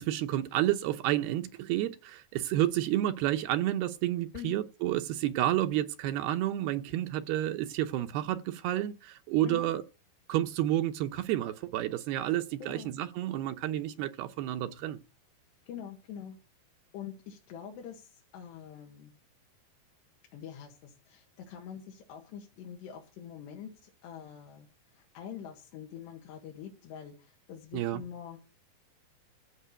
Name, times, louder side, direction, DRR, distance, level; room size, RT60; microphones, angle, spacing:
voice 1, 0.0-9.8 10.3-15.0 27.7-28.0, right 13 dB, 80° right, 2.6 m, -30 dB
voice 2, 12.6-12.9 15.7-16.4 16.9-19.1 20.3-28.4, left 8 dB, 90° left, 4.1 m, -45 dB
15.0 x 5.5 x 9.0 m
omnidirectional pair, 4.8 m